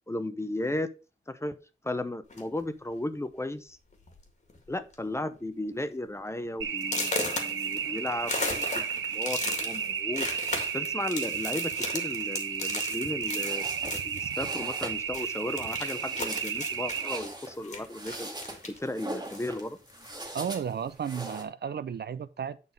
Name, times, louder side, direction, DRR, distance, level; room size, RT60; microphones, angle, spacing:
voice 1, 0.1-0.9 1.3-1.6 1.8-3.8 4.7-10.3 10.7-13.6 13.9-18.3 18.7-19.8, left 1 dB, 15° left, 0.7 m, -35 dB
sound 1, 2.3-2.6 3.4-3.5 3.9-4.2 4.5-4.9 5.4-5.5 6.0-6.1 6.8-14.9 15.1-18.9 19.2-20.3, left 3 dB, 35° left, 1.9 m, -36 dB
sound 2, 6.6-17.2, right 7 dB, 80° right, 0.9 m, -33 dB
sound 3, 13.1-21.4, right 1 dB, 20° right, 2.0 m, -42 dB
voice 2, 20.3-22.7, right 7 dB, 55° right, 0.5 m, -34 dB
9.2 x 4.0 x 5.2 m
wide cardioid pair, 130°, 21 cm